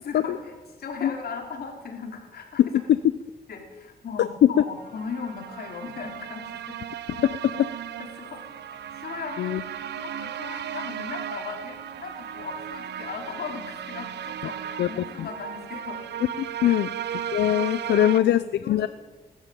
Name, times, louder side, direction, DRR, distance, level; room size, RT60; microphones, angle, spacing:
voice 1, 0.0-0.5 0.8-2.6 3.5-6.8 8.0-8.4 9.0-9.6 10.0-16.0 16.6-16.8 17.9-18.9, left 5 dB, 65° left, 2 dB, 4.9 m, -37 dB
voice 2, 2.6-3.0 4.2-4.5 7.2-7.7 9.4-9.6 14.8-14.9 15.2-15.3 16.6-16.9 17.3-18.9, left 11 dB, 90° left, 14 dB, 0.7 m, -21 dB
sound 1, 4.8-18.2, right 9 dB, 85° right, 1.1 m, -36 dB
20.5 x 13.5 x 9.2 m, 1.3 s
cardioid pair, 100°, 17 cm